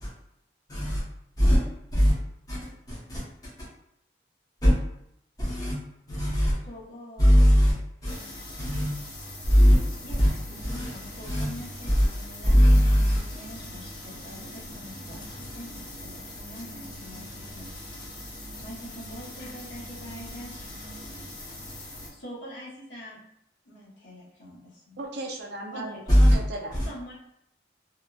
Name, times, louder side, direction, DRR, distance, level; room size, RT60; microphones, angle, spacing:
voice 1, 0.7-1.0 1.4-1.6 1.9-2.1 2.5-2.6 2.9-3.2 3.6-3.7 4.6-4.7 5.4-5.8 6.1-6.5 7.2-7.7 8.0-8.2 8.6-8.9 9.4-9.8 10.1-10.3 10.6-10.9 11.2-11.5 11.9-12.1 12.4-13.2 26.1-26.4 26.7-26.9, equal, 20° left, 0.8 m, -20 dB
voice 2, 6.7-7.4 10.0-10.4 10.7-12.6 13.2-17.7 18.6-20.8 22.1-23.2 23.6-25.0 25.7-26.2 26.7-27.1, equal, 80° left, 0.9 m, -44 dB
sound 1, 8.0-22.1, left 1 dB, 50° left, 0.8 m, -41 dB
voice 3, 25.0-26.8, right 2 dB, 60° right, 0.4 m, -36 dB
2.9 x 2.1 x 2.3 m
head